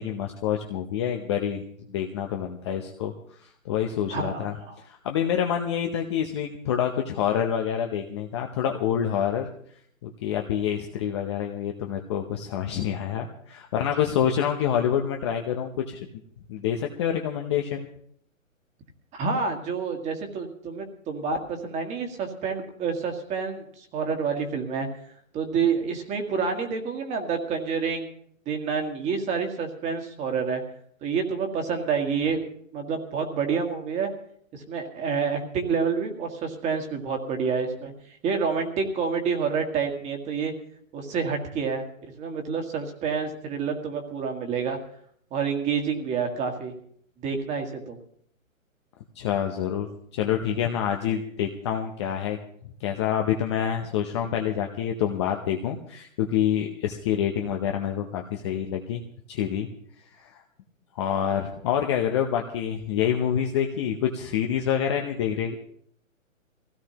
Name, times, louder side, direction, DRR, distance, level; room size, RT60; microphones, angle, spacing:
voice 1, 0.0-1.6 1.9-3.1 3.6-4.5 4.9-9.5 10.0-16.1 16.5-17.9 49.2-52.4 52.6-59.0 59.3-59.7 60.2-60.4 60.9-65.5, left 9 dB, 20° left, 3 dB, 0.7 m, -27 dB
voice 2, 4.1-4.7 19.1-24.9 25.3-28.1 28.5-30.6 31.0-32.4 32.7-34.1 34.5-37.9 38.2-40.5 40.9-41.8 42.2-44.8 45.3-46.7 47.2-48.0, right 5 dB, 15° right, 4 dB, 1.7 m, -28 dB
22.0 x 16.5 x 2.9 m, 0.66 s
hypercardioid pair, 145°, 41 cm